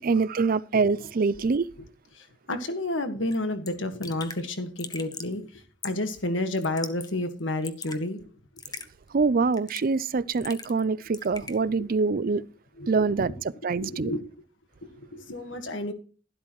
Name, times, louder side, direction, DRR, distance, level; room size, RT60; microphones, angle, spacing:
voice 1, 0.0-1.6 9.1-12.4 12.9-13.3 13.6-14.1, right 4 dB, 50° right, 0.5 m, -24 dB
voice 2, 2.1-8.2 11.7-11.9 12.8-13.3 13.7-14.2 14.8-15.9, left 1 dB, 90° left, 1.7 m, -31 dB
Raindrop / Drip, 3.3-3.4 3.7-3.8 4.0-4.4 4.8-5.3 5.8-6.1 6.6-7.1 7.4-8.0 8.6-8.9 9.5-10.0 10.3-10.8 11.1-11.6, left 5 dB, 20° left, 0.9 m, -39 dB
12.5 x 12.0 x 3.1 m
head